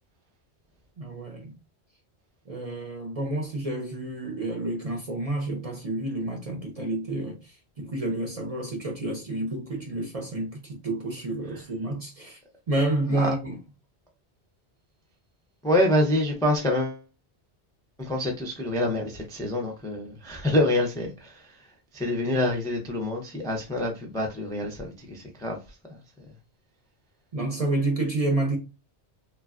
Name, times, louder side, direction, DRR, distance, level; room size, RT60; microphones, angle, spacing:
voice 1, 1.0-1.6 2.5-12.4 12.7-13.6 27.3-28.6, right 2 dB, 40° right, 0.6 m, -29 dB
voice 2, 15.6-17.0 18.0-21.3 21.9-25.6, left 1 dB, 5° left, 0.4 m, -26 dB
3.1 x 2.3 x 2.4 m
omnidirectional pair, 1.1 m